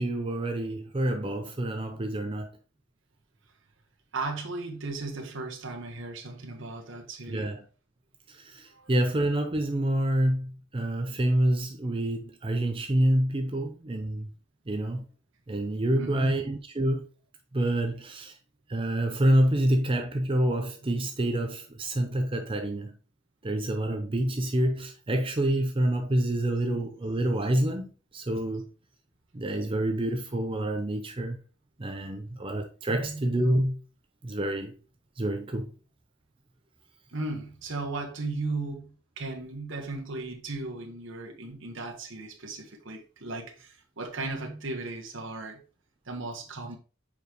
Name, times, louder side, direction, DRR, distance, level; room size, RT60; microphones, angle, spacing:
voice 1, 0.0-2.5 7.3-7.6 8.3-14.3 14.7-15.0 15.5-17.1 17.5-18.3 18.7-23.0 23.4-28.6 29.3-31.4 31.8-33.8 34.2-34.7 35.2-35.7, right 1 dB, 25° right, 0.6 m, -27 dB
voice 2, 4.1-7.5 8.7-8.9 15.9-16.4 32.9-33.3 37.1-45.6 46.0-46.8, right 3 dB, 60° right, 1.4 m, -36 dB
7.2 x 5.0 x 3.0 m
head